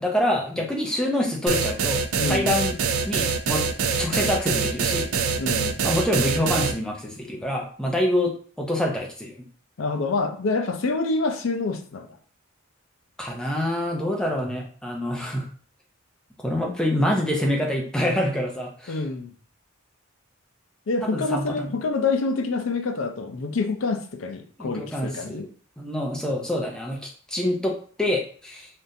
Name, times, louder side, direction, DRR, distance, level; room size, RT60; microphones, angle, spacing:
voice 1, 0.0-2.8 3.1-5.1 5.8-9.5 13.2-15.5 16.4-19.0 21.0-21.7 24.6-25.5 25.8-28.7, left 1 dB, 5° left, 0 dB, 0.5 m, -26 dB
sound 1, 1.5-6.7, right 5 dB, 85° right, 0.4 m, -24 dB
voice 2, 2.2-2.6 5.4-5.8 9.8-12.1 15.2-15.3 18.9-19.3 20.9-25.5, left 3 dB, 65° left, 7 dB, 0.5 m, -27 dB
3.6 x 2.5 x 2.7 m, 0.43 s
head